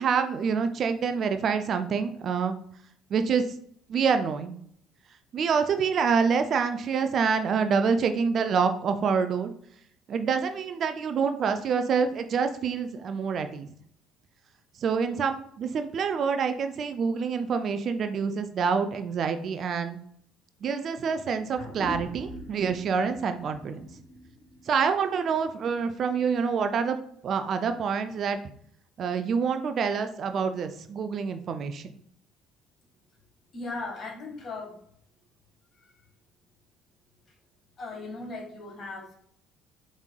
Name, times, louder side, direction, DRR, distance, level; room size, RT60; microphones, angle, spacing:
voice 1, 0.0-2.6 3.1-3.4 3.9-4.6 5.3-9.5 10.1-13.7 14.8-20.0 20.6-23.9 24.7-27.0 27.2-28.4 29.0-31.8, right 6 dB, 50° right, 8 dB, 0.4 m, -26 dB
sound 1, 21.5-26.4, left 1 dB, 60° left, 1.4 m, -43 dB
voice 2, 33.5-34.9 35.7-35.9 37.3-37.4 37.8-39.1, left 3 dB, 40° left, 0 dB, 1.6 m, -38 dB
5.0 x 3.1 x 2.2 m, 0.65 s
hypercardioid pair, 55°, 0 cm